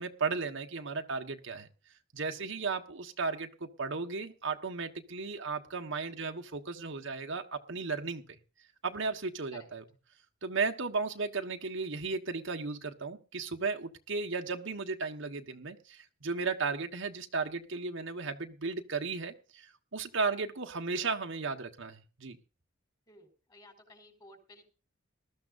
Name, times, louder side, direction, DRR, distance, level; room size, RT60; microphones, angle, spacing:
voice 1, 0.0-1.7 2.1-8.2 8.8-9.8 10.4-22.4, right 4 dB, 65° right, 4 dB, 1.4 m, -35 dB
voice 2, 23.1-24.6, left 2 dB, 20° left, 5 dB, 5.0 m, -55 dB
20.0 x 13.5 x 2.6 m, 0.35 s
head